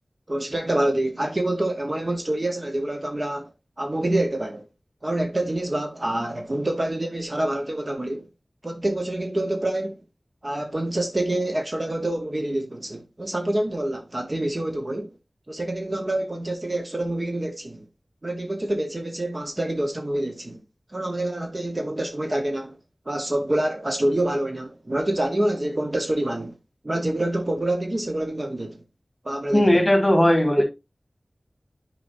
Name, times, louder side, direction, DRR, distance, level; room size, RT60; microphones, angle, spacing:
voice 1, 0.3-3.5 3.8-4.7 5.0-8.3 8.6-10.0 10.4-15.1 15.5-17.8 18.2-20.6 20.9-22.8 23.1-26.5 26.8-28.8 29.2-29.8, right 1 dB, 40° right, 1.1 m, -26 dB
voice 2, 29.5-30.6, left 1 dB, 25° left, 2.4 m, -18 dB
9.5 x 4.9 x 2.6 m
wide cardioid pair, 65°, 0 cm